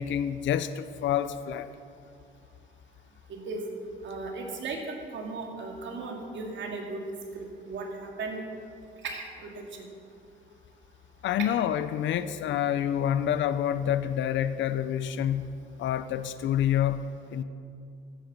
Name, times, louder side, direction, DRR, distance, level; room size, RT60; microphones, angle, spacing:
voice 1, 0.0-1.7 11.2-17.4, left 10 dB, 70° left, 13 dB, 0.6 m, -28 dB
voice 2, 3.3-3.6 4.0-7.0 7.3-8.4 9.0-9.9 11.4-11.5, right 3 dB, 70° right, 2 dB, 2.3 m, -36 dB
14.5 x 9.0 x 6.0 m, 2.3 s
cardioid pair, 90°, 20 cm